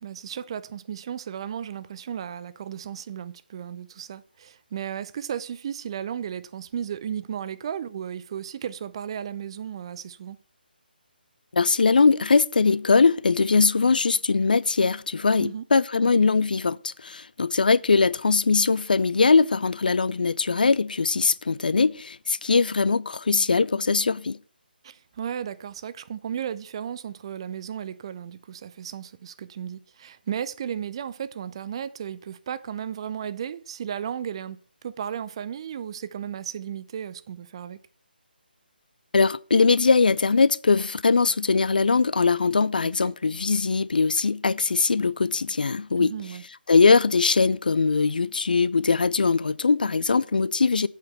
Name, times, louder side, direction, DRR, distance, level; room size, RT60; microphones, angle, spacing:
voice 1, 0.0-10.4 15.4-15.6 16.0-16.1 24.8-34.6 34.8-37.8 42.8-43.1 46.0-46.4, right 8 dB, 30° right, 0.5 m, -34 dB
voice 2, 11.5-24.4 39.1-46.1 46.7-50.9, left 4 dB, 60° left, 0.4 m, -21 dB
8.0 x 6.9 x 5.7 m
figure-of-eight pair, 145°, 5 cm